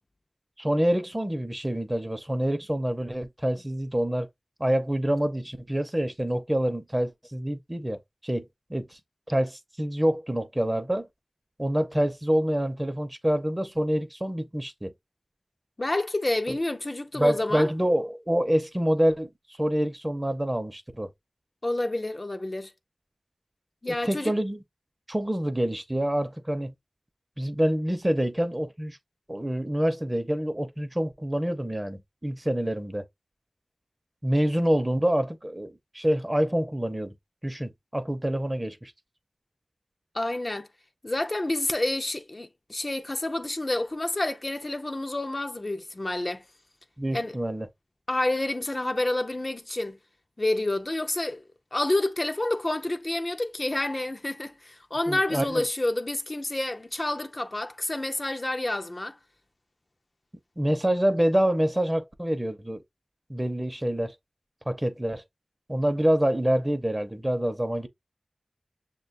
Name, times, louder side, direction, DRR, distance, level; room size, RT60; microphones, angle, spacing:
voice 1, 0.6-4.3 4.6-9.0 9.3-11.1 11.6-14.9 16.5-16.6 17.1-21.1 24.1-24.6 25.1-26.7 27.4-29.0 29.3-33.0 34.2-37.1 37.4-38.9 47.0-47.7 55.1-55.6 60.6-62.8 63.3-64.1 64.7-65.2 65.7-67.9, right 1 dB, 20° right, 0.6 m, -26 dB
voice 2, 15.8-17.7 21.6-22.7 23.8-24.3 40.1-40.7 41.0-46.4 47.1-47.3 48.1-50.0 50.4-51.4 51.7-59.2, left 1 dB, 45° left, 0.4 m, -29 dB
6.6 x 2.2 x 2.5 m
wide cardioid pair, 55°, 0 cm